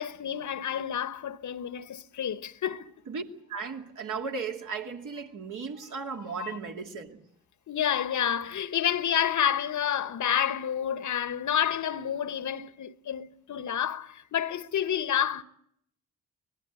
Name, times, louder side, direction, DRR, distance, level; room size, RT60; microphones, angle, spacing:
voice 1, 0.0-2.9 6.4-6.6 7.7-15.4, left 9 dB, 50° left, 1.2 m, -29 dB
voice 2, 3.5-7.2, right 5 dB, 55° right, 2.7 m, -36 dB
24.5 x 18.5 x 8.3 m
hypercardioid pair, 45°, 37 cm